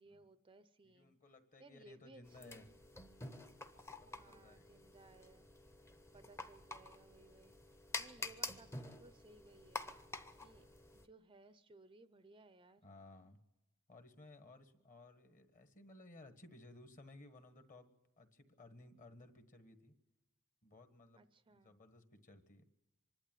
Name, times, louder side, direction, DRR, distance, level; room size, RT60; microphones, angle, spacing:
voice 1, 0.0-1.2 1.6-2.7 4.2-5.5 6.1-7.6 8.0-9.9 10.4-10.7 10.9-12.8 21.2-21.7, right 2 dB, 25° right, 12 dB, 0.6 m, -62 dB
voice 2, 0.8-2.7 3.9-4.7 8.2-8.3 12.8-13.4 13.9-19.9 20.6-22.7, left 2 dB, 35° left, 8 dB, 1.6 m, -59 dB
sound 1, 2.2-11.1, left 2 dB, 10° left, 0.8 m, -49 dB
25.0 x 11.5 x 9.2 m, 0.98 s
head